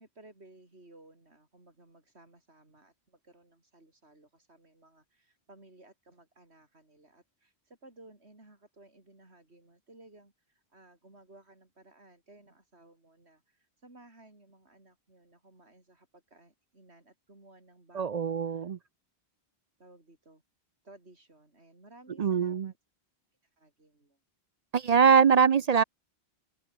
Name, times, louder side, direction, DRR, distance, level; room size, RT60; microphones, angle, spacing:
voice 1, 0.0-18.9 19.8-20.4 20.8-22.8 23.4-24.2, right 2 dB, 75° right, 5.2 m, -57 dB
voice 2, 17.9-18.8 22.2-22.7 24.7-25.8, right 6 dB, 50° right, 0.5 m, -23 dB
open air
omnidirectional pair, 1.1 m